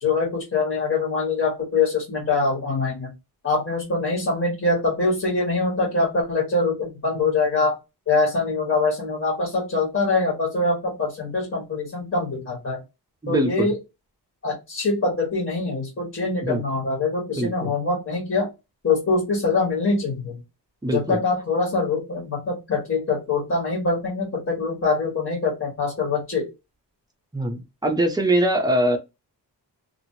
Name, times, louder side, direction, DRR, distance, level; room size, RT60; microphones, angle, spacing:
voice 1, 0.0-3.1 3.4-7.8 8.1-12.8 13.3-13.8 14.4-18.5 18.8-20.4 20.9-26.5, left 3 dB, 35° left, 1.5 m, -24 dB
voice 2, 13.2-13.7 16.4-16.6 17.4-17.7 20.8-21.2 27.3-29.0, right 1 dB, 10° right, 0.6 m, -22 dB
2.8 x 2.5 x 2.8 m
wide cardioid pair, 170°, 40 cm